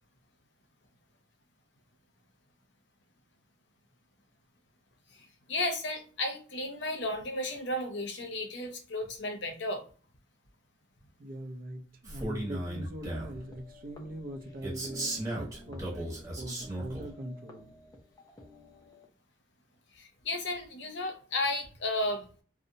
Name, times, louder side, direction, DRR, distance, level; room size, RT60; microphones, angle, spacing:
voice 1, 5.1-9.8 19.9-22.4, left 2 dB, 65° left, 0.6 m, -34 dB
voice 2, 11.2-17.7, right 1 dB, 45° right, 0.4 m, -42 dB
Male speech man speaking, 12.0-13.4 14.6-17.0, right 1 dB, 20° right, 0.8 m, -36 dB
sound 1, 13.0-19.1, left 1 dB, 20° left, 0.4 m, -53 dB
2.7 x 2.0 x 2.5 m
head